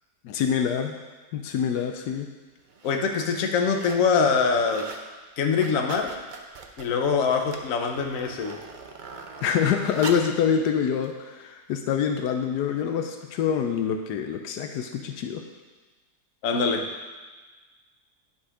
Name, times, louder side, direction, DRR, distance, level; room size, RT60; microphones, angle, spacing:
voice 1, 0.2-1.0 1.3-2.3 9.4-15.4, left 7 dB, 85° left, 5 dB, 1.2 m, -26 dB
sound 1, 1.8-1.9 2.6-3.0 3.4-4.1 4.4-5.1 5.4-10.4 11.0-11.1, right 4 dB, 90° right, 0.4 m, -41 dB
voice 2, 2.8-4.9 5.4-6.2 6.8-8.6 16.4-16.9, left 5 dB, 60° left, 3 dB, 1.2 m, -24 dB
11.0 x 4.2 x 4.9 m, 1.3 s
omnidirectional pair, 1.7 m